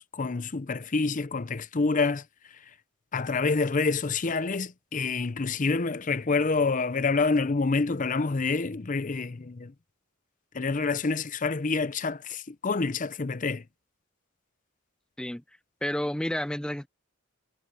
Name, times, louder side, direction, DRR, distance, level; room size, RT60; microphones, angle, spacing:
voice 1, 0.0-2.2 3.1-9.7 10.5-13.6, left 4 dB, 40° left, 0.6 m, -27 dB
voice 2, 15.8-16.9, left 1 dB, 5° left, 0.4 m, -30 dB
head